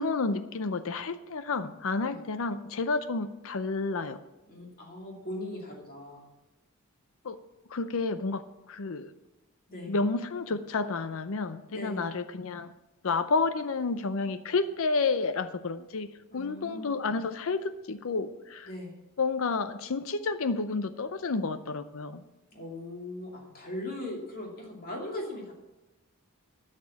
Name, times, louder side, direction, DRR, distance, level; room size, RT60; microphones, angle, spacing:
voice 1, 0.0-4.2 7.2-7.4 7.7-9.1 9.9-12.7 13.0-18.7 19.2-22.2, left 4 dB, 65° left, 12 dB, 0.6 m, -30 dB
voice 2, 4.5-6.3 9.7-10.0 11.7-12.1 16.3-16.9 18.6-19.0 22.5-25.5, left 1 dB, 40° left, -1 dB, 2.6 m, -39 dB
13.0 x 6.6 x 7.4 m, 1.0 s
head